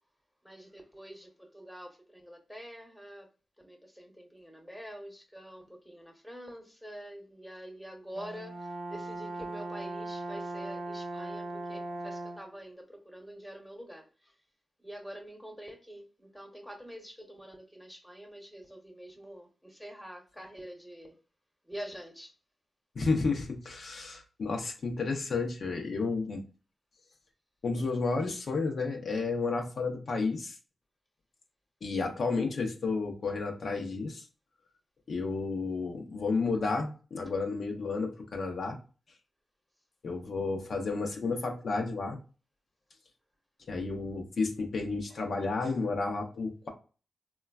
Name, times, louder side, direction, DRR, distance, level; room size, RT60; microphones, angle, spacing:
voice 1, 0.4-3.3 3.6-14.3 14.8-21.1 21.7-22.3, equal, ahead, 0.9 m, -46 dB
Brass instrument, 8.1-12.6, right 2 dB, 70° right, 0.6 m, -39 dB
voice 2, 23.0-26.4 27.6-30.6 31.8-34.2 35.1-38.8 40.0-42.2 43.7-46.7, left 4 dB, 65° left, 0.5 m, -31 dB
3.0 x 2.2 x 2.3 m
cardioid pair, 50°, 0 cm